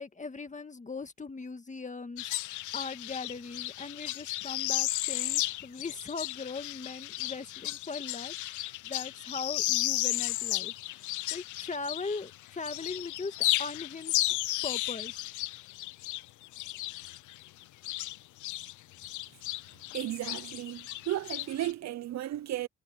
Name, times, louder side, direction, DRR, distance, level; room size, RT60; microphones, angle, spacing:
voice 1, 0.0-10.7 11.3-14.4 14.6-15.2, left 4 dB, 25° left, 1.9 m, -40 dB
sound 1, 2.2-12.3 12.6-18.7 19.0-21.7, left 17 dB, 80° left, 0.6 m, -34 dB
voice 2, 19.9-22.7, right 13 dB, 60° right, 0.7 m, -34 dB
cardioid pair, 90°, 30 cm